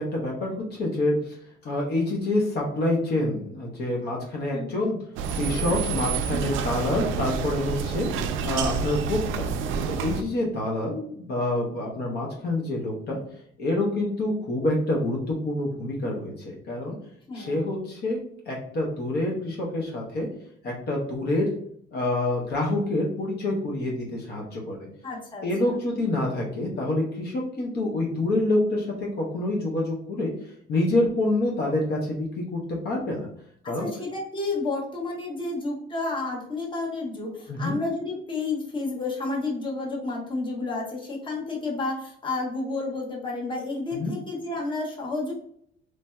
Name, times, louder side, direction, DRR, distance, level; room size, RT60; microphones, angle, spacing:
voice 1, 0.0-1.4 1.6-5.0 5.4-8.1 8.4-9.5 9.9-13.2 13.6-17.0 17.3-18.2 18.5-20.3 20.6-21.5 21.9-24.9 25.4-30.3 30.7-33.3 33.7-33.9 37.5-37.7 43.9-44.1, left 1 dB, 55° left, -2 dB, 0.8 m, -27 dB
voice 2, 4.5-4.9 17.3-17.7 25.0-25.8 33.6-45.3, left 3 dB, 25° left, -3 dB, 1.0 m, -31 dB
sound 1, 5.2-10.2, right 6 dB, 75° right, 0.4 m, -28 dB
3.2 x 2.6 x 2.2 m, 0.66 s
cardioid pair, 115°, 20 cm